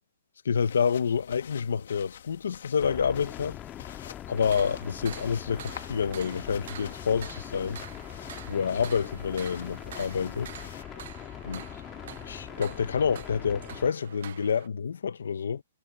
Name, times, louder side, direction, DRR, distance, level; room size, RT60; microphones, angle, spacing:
voice 1, 0.4-3.6 4.3-7.8 8.5-10.5 11.4-11.6 12.2-15.6, left 6 dB, 85° left, 1.4 m, -28 dB
sound 1, 0.5-10.8, left 9 dB, 55° left, 2.6 m, -48 dB
sound 2, 2.8-13.9, left 12 dB, 15° left, 0.4 m, -42 dB
sound 3, 4.4-14.7, right 10 dB, 50° right, 1.3 m, -47 dB
hypercardioid pair, 175°, 0 cm